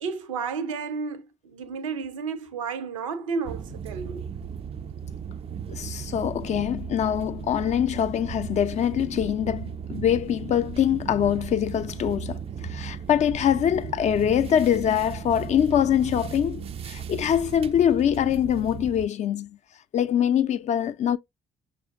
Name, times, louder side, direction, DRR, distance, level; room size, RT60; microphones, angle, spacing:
voice 1, 0.0-4.3, right 5 dB, 75° right, 0.6 m, -32 dB
sound 1, 3.4-19.1, right 7 dB, 35° right, 0.4 m, -36 dB
voice 2, 5.7-12.4 12.7-19.5 19.9-21.2, left 9 dB, 45° left, 0.5 m, -24 dB
6.1 x 2.6 x 2.4 m
figure-of-eight pair, 45°, 17 cm